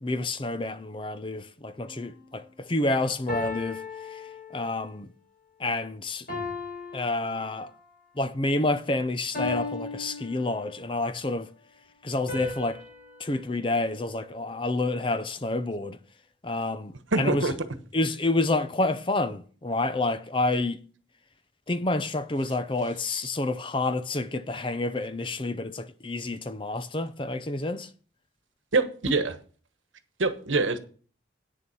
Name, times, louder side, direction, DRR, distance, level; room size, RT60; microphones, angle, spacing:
voice 1, 0.0-5.1 5.6-6.3 6.9-7.7 8.2-11.5 12.0-12.8 13.2-16.0 16.4-17.5 17.9-20.8 21.7-27.9, left 2 dB, 25° left, 0.6 m, -29 dB
sound 1, 1.8-2.1 3.3-4.9 6.3-7.9 9.3-11.0 12.3-14.7, left 3 dB, 45° left, 5.1 m, -38 dB
voice 2, 17.1-17.5 28.7-29.4 30.2-30.8, right 3 dB, 90° right, 1.2 m, -24 dB
9.1 x 6.9 x 6.1 m
head